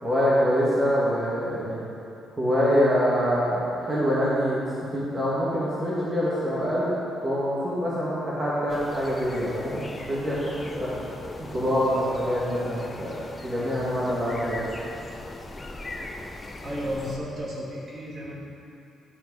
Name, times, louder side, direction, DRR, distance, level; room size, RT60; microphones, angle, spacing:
voice 1, 0.0-1.8 2.4-4.6 4.9-6.9 7.2-10.9 11.4-14.7, equal, 25° right, -8 dB, 2.0 m, -25 dB
sound 1, 8.7-17.2, left 2 dB, 25° left, 0.8 m, -39 dB
voice 2, 16.6-18.4, equal, 40° right, -6 dB, 2.3 m, -33 dB
12.0 x 4.7 x 4.8 m, 2.7 s
cardioid pair, 90°, 0 cm